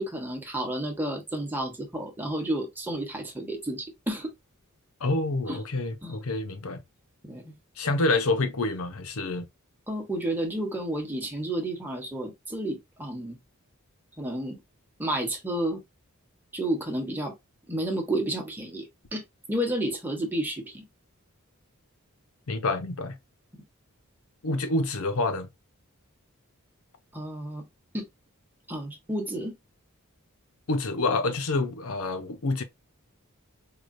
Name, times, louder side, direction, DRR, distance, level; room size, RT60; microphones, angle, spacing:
voice 1, 0.0-4.3 5.5-5.6 6.0-6.2 7.2-7.5 9.9-13.4 14.2-14.6 15.0-15.8 16.5-17.3 17.7-18.9 19.1-19.2 19.5-20.8 27.1-27.6 27.9-28.1 28.7-29.6, right 1 dB, 10° right, 1.0 m, -31 dB
voice 2, 5.0-6.8 7.8-9.5 22.5-23.2 24.4-25.5 30.7-32.6, left 2 dB, 75° left, 0.8 m, -27 dB
4.8 x 2.3 x 2.6 m
head